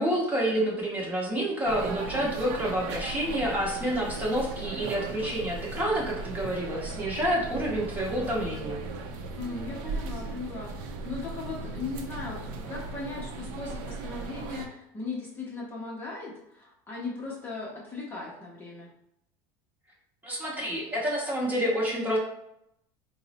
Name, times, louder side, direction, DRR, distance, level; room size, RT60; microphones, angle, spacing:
voice 1, 0.0-8.8 20.2-22.2, equal, 15° right, -3 dB, 0.9 m, -28 dB
sound 1, 1.6-14.7, right 3 dB, 65° right, 0.5 m, -37 dB
voice 2, 9.3-12.4 12.7-18.9, left 3 dB, 20° left, -4 dB, 0.6 m, -38 dB
3.9 x 2.0 x 4.0 m, 0.80 s
cardioid pair, 160°, 11 cm